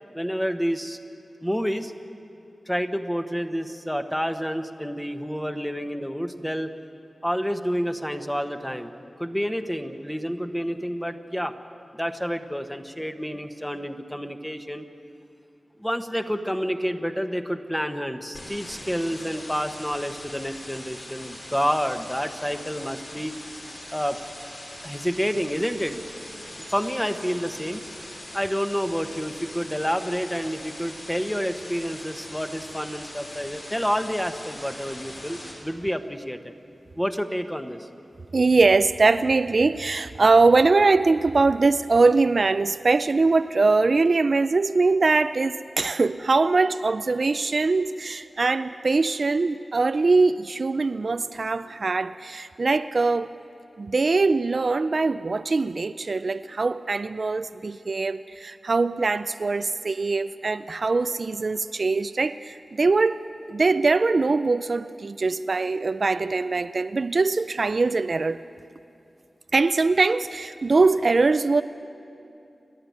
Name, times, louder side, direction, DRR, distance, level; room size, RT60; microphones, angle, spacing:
voice 1, 0.1-1.0 1.4-1.9 2.7-6.7 7.2-8.9 9.2-11.5 11.9-14.8 15.8-23.3 23.9-24.2 24.8-25.9 26.7-27.8 28.3-36.5 37.0-37.9, equal, 5° left, 1.2 m, -29 dB
sound 1, 18.3-35.5, left 1 dB, 60° left, 6.0 m, -41 dB
voice 2, 38.3-53.3 53.8-68.4 69.5-71.6, right 3 dB, 60° right, 0.4 m, -22 dB
29.5 x 11.0 x 9.4 m
wide cardioid pair, 75°, 0 cm